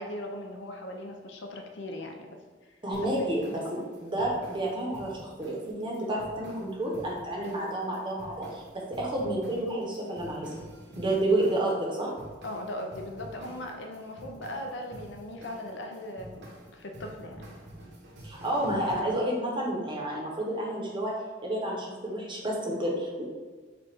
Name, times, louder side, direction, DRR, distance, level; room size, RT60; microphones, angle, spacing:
voice 1, 0.0-2.3 3.2-3.3 3.6-3.9 11.0-11.3 12.4-16.5 16.7-17.5, left 1 dB, 65° left, 4 dB, 0.5 m, -39 dB
voice 2, 2.8-3.6 4.0-10.5 11.0-12.1 18.2-21.1 21.4-23.2, right 1 dB, 25° right, -2 dB, 0.8 m, -30 dB
sound 1, 2.9-18.9, right 1 dB, 60° right, 0.9 m, -48 dB
4.9 x 2.4 x 4.3 m, 1.4 s
head